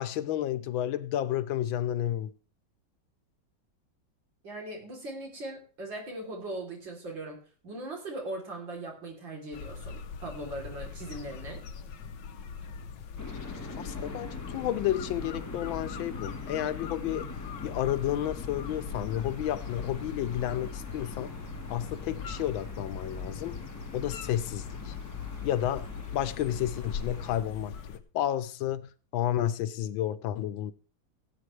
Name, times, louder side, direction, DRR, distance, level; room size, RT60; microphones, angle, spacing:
voice 1, 0.0-2.3 13.8-17.3 17.6-21.3 21.7-23.6 23.9-24.9 25.4-30.7, left 12 dB, 90° left, 1.5 m, -31 dB
voice 2, 4.4-11.6, right 2 dB, 75° right, 4.2 m, -39 dB
sound 1, 9.5-28.0, left 6 dB, 70° left, 1.5 m, -41 dB
sound 2, 13.2-27.4, left 3 dB, 10° left, 1.4 m, -43 dB
17.5 x 9.0 x 3.3 m
omnidirectional pair, 2.1 m